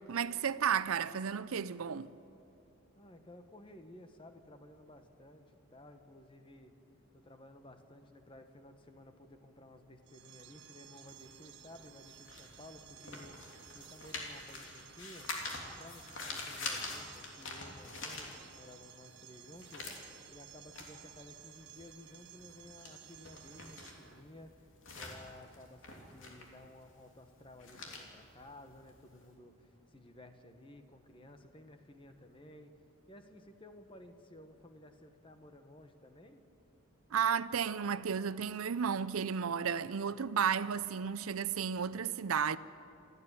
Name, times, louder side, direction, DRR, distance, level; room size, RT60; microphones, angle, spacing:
voice 1, 0.1-2.1 37.1-42.6, right 7 dB, 90° right, 0.6 m, -33 dB
voice 2, 3.0-6.7 7.1-13.4 13.7-15.3 15.7-32.7 33.1-36.4, left 1 dB, 25° left, 1.2 m, -55 dB
sound 1, 10.0-24.2, right 10 dB, 55° right, 1.0 m, -56 dB
sound 2, 11.1-18.8 19.2-29.2, left 3 dB, 65° left, 3.2 m, -46 dB
27.5 x 9.7 x 9.7 m
head